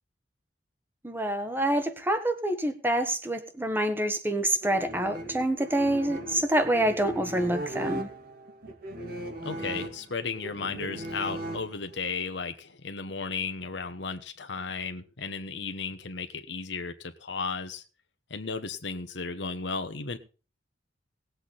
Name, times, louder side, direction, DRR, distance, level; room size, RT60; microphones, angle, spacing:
voice 1, 1.0-8.1, right 1 dB, 10° right, 8 dB, 1.4 m, -27 dB
sound 1, 4.6-12.1, right 1 dB, 55° right, 2.3 m, -38 dB
voice 2, 9.4-17.8 18.3-20.2, left 4 dB, 75° left, 7 dB, 1.2 m, -34 dB
19.0 x 8.2 x 4.2 m, 0.35 s
head